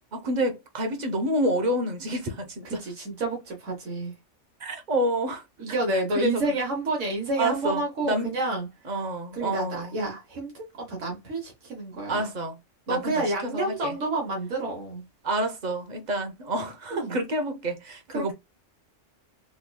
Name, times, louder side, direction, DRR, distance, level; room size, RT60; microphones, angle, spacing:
voice 1, 0.1-2.8 4.6-5.4 5.9-6.4 7.4-8.3 8.9-10.0 12.1-12.6 12.9-14.0 15.2-18.3, right 1 dB, 40° right, 0.8 m, -28 dB
voice 2, 2.6-4.1 5.6-8.7 9.3-12.3 12.9-15.0 16.9-17.2 18.1-18.3, right 2 dB, 80° right, 1.4 m, -29 dB
3.6 x 3.1 x 2.2 m
omnidirectional pair, 1.3 m